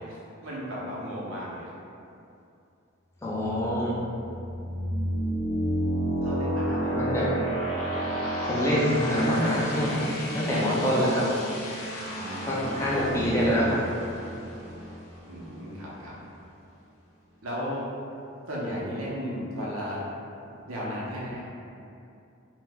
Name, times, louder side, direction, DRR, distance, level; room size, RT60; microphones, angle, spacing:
voice 1, 0.0-1.7 6.2-7.0 12.1-12.9 15.3-16.1 17.4-17.9 18.5-20.0 20.7-21.4, equal, 85° right, -6 dB, 0.7 m, -35 dB
voice 2, 3.2-3.9 7.0-7.3 8.5-11.3 12.5-13.8, equal, 15° left, -7 dB, 0.4 m, -25 dB
sound 1, 3.4-16.0, equal, 85° left, 0.5 m, -31 dB
2.8 x 2.1 x 3.5 m, 2.6 s
head